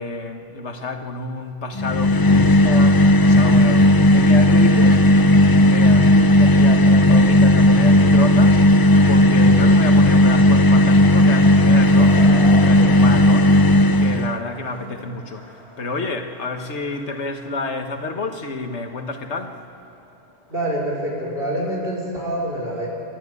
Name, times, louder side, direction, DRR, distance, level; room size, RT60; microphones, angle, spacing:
voice 1, 0.0-5.1 5.6-8.6 9.1-12.2 12.6-13.6 14.0-15.4 15.8-19.6, left 3 dB, 90° left, 5 dB, 1.7 m, -29 dB
sound 1, 1.8-14.4, left 1 dB, 30° left, 0.4 m, -14 dB
Skateboard, 8.0-21.7, left 1 dB, 75° left, 4.2 m, -41 dB
voice 2, 20.5-22.9, right 1 dB, 60° right, -3 dB, 5.1 m, -26 dB
27.0 x 13.0 x 9.7 m, 2.6 s
omnidirectional pair, 1.1 m